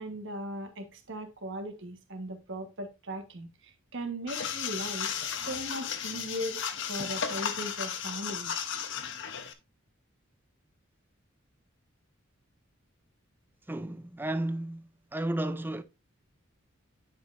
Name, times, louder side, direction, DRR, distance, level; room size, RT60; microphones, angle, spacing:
voice 1, 0.0-8.5, right 1 dB, 65° right, 1.3 m, -38 dB
sound 1, 4.3-9.5, left 7 dB, 65° left, 0.8 m, -34 dB
voice 2, 13.7-15.8, right 1 dB, 10° right, 0.5 m, -33 dB
9.7 x 5.4 x 2.5 m
head